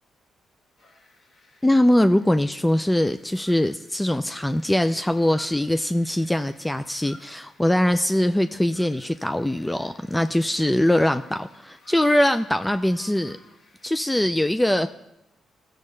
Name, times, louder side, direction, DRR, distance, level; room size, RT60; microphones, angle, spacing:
sound 1, 0.8-14.0, left 2 dB, 65° left, 2.1 m, -54 dB
voice 1, 1.6-13.4 13.8-14.9, left 1 dB, 10° left, 9 dB, 0.4 m, -22 dB
14.5 x 6.5 x 3.2 m, 0.91 s
supercardioid pair, 60°, 0 cm